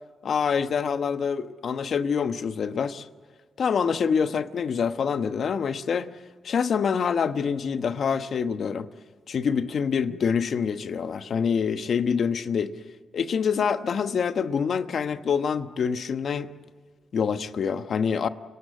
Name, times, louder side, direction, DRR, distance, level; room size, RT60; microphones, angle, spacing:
voice 1, 0.2-3.0 3.6-6.1 6.4-8.9 9.3-12.7 13.1-16.5 17.1-18.3, left 6 dB, 65° left, 1.2 m, -26 dB
29.5 x 19.0 x 7.8 m
supercardioid pair, 50°, 0 cm